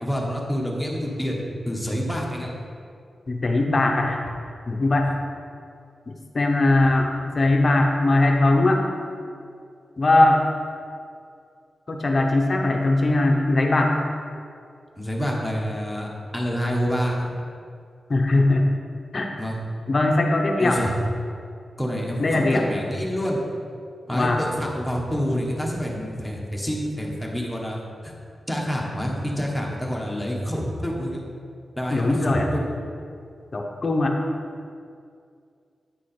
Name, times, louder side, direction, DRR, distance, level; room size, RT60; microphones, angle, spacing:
voice 1, 0.0-1.4 1.6-2.5 5.0-5.1 15.0-17.4 19.4-19.6 20.6-20.9 21.8-23.4 24.1-27.8 28.0-28.1 28.5-31.2 31.8-32.7, equal, 5° left, -3 dB, 1.3 m, -27 dB
voice 2, 3.3-4.2 4.7-5.1 6.1-8.8 10.0-10.4 11.9-13.9 18.1-18.6 19.1-19.3 19.9-20.8 22.2-22.6 24.1-24.4 31.9-32.5 33.5-34.2, left 2 dB, 40° left, 2 dB, 0.7 m, -20 dB
9.2 x 4.9 x 4.3 m, 2.3 s
wide cardioid pair, 105°, 0 cm